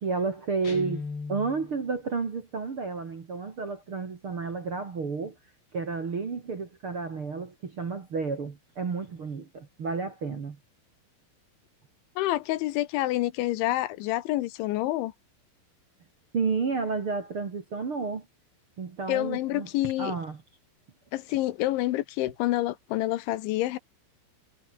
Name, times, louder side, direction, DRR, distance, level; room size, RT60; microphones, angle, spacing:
voice 1, 0.0-5.4 5.7-10.6 16.3-18.3 18.8-19.7 20.0-20.4, right 4 dB, 40° right, 2.2 m, -31 dB
Guitar, 0.6-1.8, left 4 dB, 30° left, 4.5 m, -37 dB
voice 2, 12.2-15.1 19.1-20.2 21.1-23.8, left 16 dB, 80° left, 3.3 m, -28 dB
omnidirectional pair, 5.5 m